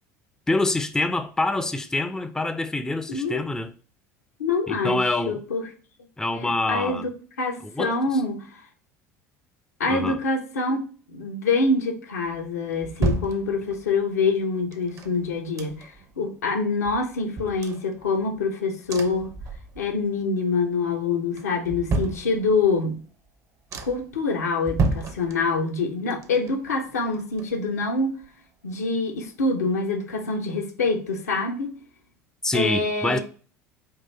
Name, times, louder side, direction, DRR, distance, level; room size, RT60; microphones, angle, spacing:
voice 1, 0.5-3.7 4.7-5.4 6.2-7.1 7.6-8.0 9.9-10.2 32.4-33.2, left 2 dB, 5° left, 0.4 m, -26 dB
voice 2, 3.1-3.4 4.4-5.0 5.3-5.6 6.3-7.1 7.4-8.5 9.8-10.8 11.1-19.3 19.8-23.0 23.8-28.1 28.6-31.8 32.5-33.2, left 3 dB, 80° left, 0.7 m, -25 dB
sound 1, 12.3-14.0 14.7-16.1 16.5-16.6 16.8-18.5 18.9-20.1 20.4-20.9 21.3-22.8 23.3-23.4 23.7-24.2 24.6-25.8 26.1-27.9 28.2-28.3, right 3 dB, 40° right, 0.6 m, -31 dB
3.8 x 2.5 x 3.9 m
hypercardioid pair, 70°, 8 cm